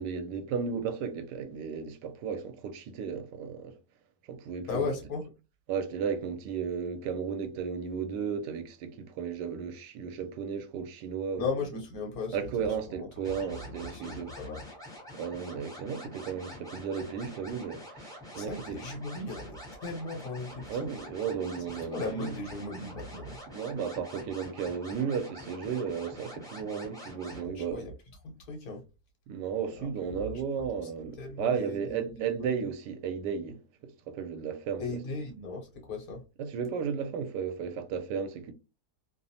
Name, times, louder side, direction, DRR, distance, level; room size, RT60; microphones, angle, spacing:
voice 1, 0.0-3.8 4.3-4.9 5.7-11.5 12.3-14.3 15.1-18.8 20.7-22.3 23.5-27.9 29.3-33.6 34.1-34.8 36.4-38.5, right 6 dB, 85° right, 1.2 m, -34 dB
voice 2, 4.7-5.3 11.4-13.2 13.5-14.6 18.3-20.9 21.9-23.4 27.3-27.9 28.2-28.8 29.8-30.4 31.2-32.5 34.8-36.2, left 3 dB, 65° left, 1.3 m, -37 dB
sound 1, 13.2-27.4, left 1 dB, 5° left, 0.6 m, -46 dB
3.0 x 2.0 x 2.7 m
omnidirectional pair, 1.8 m